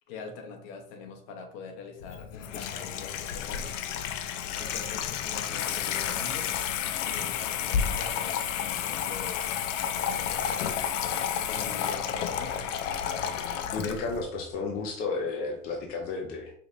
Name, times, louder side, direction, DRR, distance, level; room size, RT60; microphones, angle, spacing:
voice 1, 0.1-3.7 4.5-6.5 7.0-9.6 10.0-10.8 11.5-12.6, left 4 dB, 50° left, 4 dB, 1.0 m, -43 dB
Water tap faucet / Sink (filling or washing), 2.0-14.2, left 8 dB, 75° left, 0.6 m, -31 dB
voice 2, 13.7-16.5, left 4 dB, 25° left, 1 dB, 0.5 m, -32 dB
4.8 x 3.1 x 2.6 m, 0.63 s
supercardioid pair, 135°, 38 cm